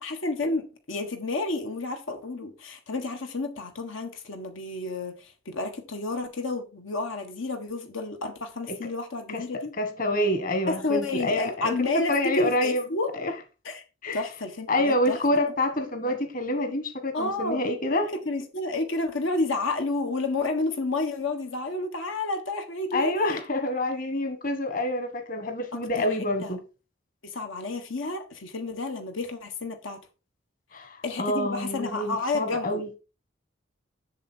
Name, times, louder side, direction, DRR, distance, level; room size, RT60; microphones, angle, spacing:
voice 1, 0.0-9.7 10.7-13.1 13.6-13.8 14.1-15.2 17.1-17.6 18.2-23.4 25.7-26.1 26.4-26.5 27.2-30.0 31.0-32.8, left 2 dB, 90° left, 1.5 m, -30 dB
voice 2, 9.8-12.8 13.1-13.3 14.0-14.2 14.7-18.1 22.9-26.6 30.7-32.9, left 1 dB, 45° left, 1.4 m, -27 dB
7.5 x 6.6 x 4.4 m
head